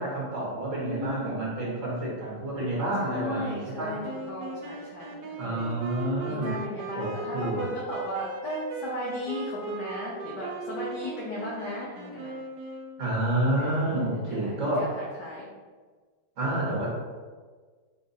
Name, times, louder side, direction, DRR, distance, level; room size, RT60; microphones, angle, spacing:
voice 1, 0.0-4.0 5.4-6.5 6.9-7.7 13.0-14.9 16.4-16.9, right 1 dB, 55° right, -5 dB, 1.3 m, -29 dB
voice 2, 0.8-1.4 3.0-4.0 4.3-5.7 6.3-12.3 13.6-15.5, left 1 dB, 80° left, -6 dB, 1.4 m, -36 dB
sound 1, 4.0-13.2, right 3 dB, 85° right, 1.2 m, -38 dB
3.8 x 2.4 x 4.0 m, 1.4 s
omnidirectional pair, 1.8 m